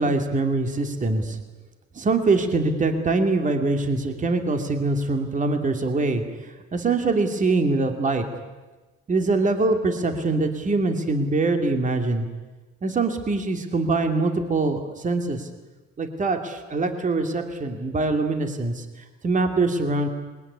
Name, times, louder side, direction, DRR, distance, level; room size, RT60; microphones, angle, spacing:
voice 1, 0.0-1.4 1.9-6.2 6.7-8.2 9.1-12.2 12.8-15.5 16.0-18.8 19.2-20.1, right 3 dB, 25° right, 5 dB, 2.7 m, -23 dB
27.0 x 22.0 x 9.8 m, 1.2 s
cardioid pair, 150°, 30 cm